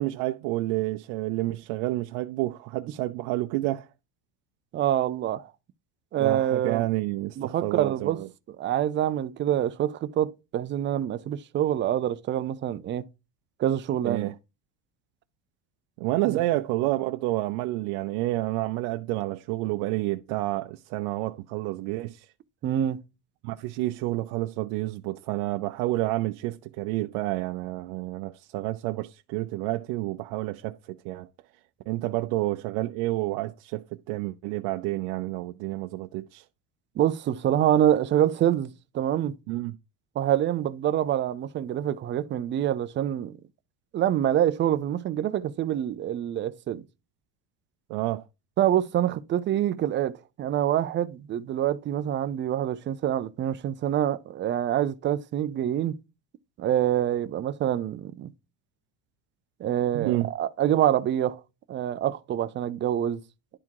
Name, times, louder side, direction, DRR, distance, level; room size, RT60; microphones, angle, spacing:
voice 1, 0.0-3.9 6.2-8.3 14.0-14.3 16.0-22.3 23.4-31.3 31.9-36.4 39.5-39.7 47.9-48.2 59.9-60.3, right 18 dB, 80° right, 0.6 m, -29 dB
voice 2, 4.7-5.5 6.1-6.9 7.4-8.2 8.5-13.0 13.6-14.3 16.3-16.4 22.6-23.0 37.0-39.3 40.2-43.3 43.9-46.8 48.6-56.0 56.6-58.3 59.6-61.4 61.7-63.2, right 11 dB, 30° right, 0.4 m, -26 dB
10.5 x 3.6 x 4.5 m
cardioid pair, 140°, 44 cm